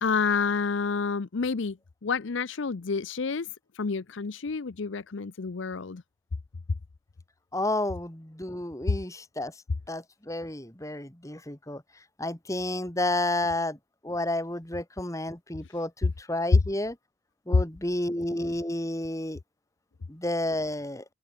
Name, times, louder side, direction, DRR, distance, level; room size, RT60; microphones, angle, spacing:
voice 1, 0.0-1.8 2.0-3.5 3.7-6.0, left 5 dB, 65° left, 0.6 m, -29 dB
voice 2, 7.5-9.5 9.9-11.8 12.2-13.8 14.0-17.0 17.5-19.4 20.1-21.0, left 1 dB, 15° left, 2.2 m, -31 dB
open air
head